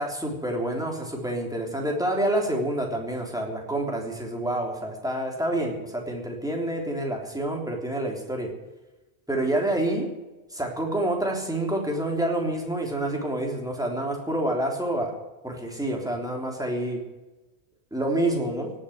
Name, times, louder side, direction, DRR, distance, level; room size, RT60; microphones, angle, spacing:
voice 1, 0.0-8.5 9.3-10.1 10.5-15.1 15.4-17.0 17.9-18.7, right 1 dB, 5° right, 0 dB, 3.4 m, -28 dB
18.0 x 7.4 x 9.9 m, 1.1 s
omnidirectional pair, 1.2 m